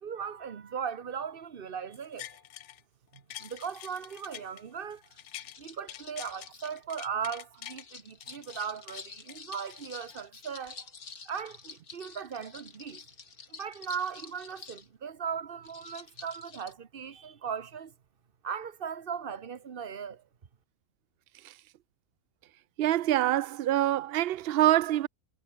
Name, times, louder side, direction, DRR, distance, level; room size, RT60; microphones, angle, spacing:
voice 1, 0.0-2.3 3.1-5.0 5.6-10.8 11.2-13.0 13.5-17.9 18.4-20.2, right 7 dB, 40° right, 1.1 m, -38 dB
sound 1, 1.9-2.8 3.1-5.6 5.9-7.8 8.2-10.2 10.7-10.8, left 12 dB, 65° left, 0.8 m, -46 dB
sound 2, 3.3-4.2 5.1-6.8 7.5-14.9 15.6-16.7, left 5 dB, 80° left, 2.7 m, -49 dB
voice 2, 22.8-25.1, right 13 dB, 75° right, 0.5 m, -25 dB
omnidirectional pair, 1.5 m